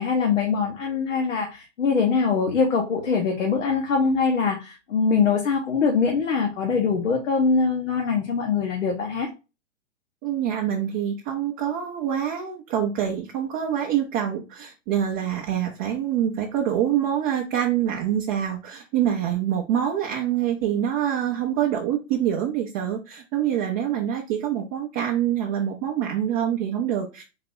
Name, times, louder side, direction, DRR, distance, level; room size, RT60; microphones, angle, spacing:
voice 1, 0.0-9.3, left 5 dB, 70° left, 0 dB, 1.1 m, -23 dB
voice 2, 10.2-27.2, right 10 dB, 20° right, 1 dB, 0.5 m, -25 dB
3.9 x 2.8 x 3.7 m, 0.28 s
figure-of-eight pair, 120°, 38 cm